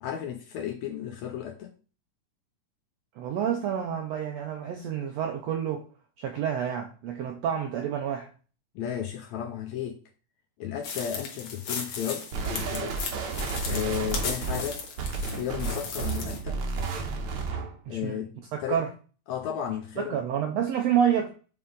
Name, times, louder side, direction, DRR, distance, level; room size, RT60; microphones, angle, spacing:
voice 1, 0.0-1.7 8.7-10.0 10.6-13.0 13.7-14.8 15.2-16.6 17.9-18.8 19.3-20.2, left 9 dB, 80° left, 1.7 m, -34 dB
voice 2, 3.2-5.8 6.2-8.3 17.9-18.2 18.5-18.9 20.0-21.3, right 9 dB, 80° right, 1.5 m, -28 dB
sound 1, 10.8-16.4, left 5 dB, 60° left, 1.6 m, -36 dB
sound 2, 12.3-17.8, right 4 dB, 65° right, 1.4 m, -32 dB
6.8 x 3.7 x 3.8 m
omnidirectional pair, 3.7 m